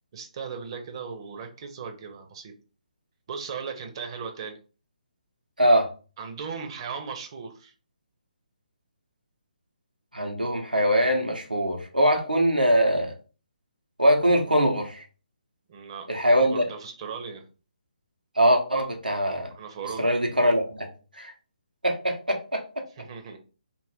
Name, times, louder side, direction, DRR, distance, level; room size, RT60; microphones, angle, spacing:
voice 1, 0.1-2.5 3.3-4.6 6.2-7.7 15.7-17.5 19.5-20.1 23.0-23.4, right 6 dB, 35° right, 0.6 m, -37 dB
voice 2, 5.6-5.9 10.1-13.1 14.0-15.0 16.1-16.6 18.4-19.5 20.0-20.9 21.2-21.3 21.8-22.8, equal, 90° right, 0.9 m, -22 dB
2.5 x 2.5 x 3.4 m
figure-of-eight pair, 140°, 5 cm